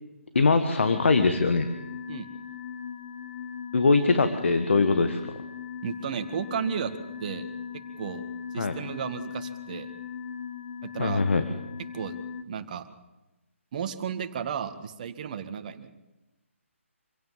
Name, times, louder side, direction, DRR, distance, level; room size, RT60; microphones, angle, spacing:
voice 1, 0.3-1.6 3.7-5.2 8.6-8.8 11.0-11.4, left 3 dB, 60° left, 9 dB, 1.6 m, -22 dB
sound 1, 0.8-12.4, left 7 dB, 25° left, 1.0 m, -39 dB
voice 2, 5.8-6.9 7.2-7.5 7.7-8.2 8.5-9.9 10.8-11.2 11.9-12.1 12.4-12.9 13.7-15.9, right 7 dB, 35° right, 9 dB, 1.8 m, -33 dB
26.0 x 16.5 x 7.4 m, 1.0 s
figure-of-eight pair, 140°, 7 cm